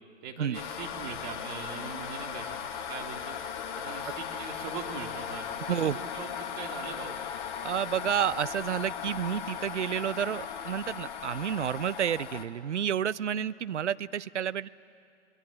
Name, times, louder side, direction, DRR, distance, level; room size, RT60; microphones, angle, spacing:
voice 1, 0.2-2.6 2.9-3.4 3.7-6.3 6.5-7.2, right 6 dB, 40° right, 2 dB, 3.3 m, -41 dB
sound 1, 0.5-12.4, left 8 dB, 40° left, 1.7 m, -37 dB
voice 2, 7.6-14.7, right 9 dB, 80° right, 17 dB, 0.7 m, -30 dB
24.0 x 21.5 x 8.7 m, 2.4 s
figure-of-eight pair, 120°, 35 cm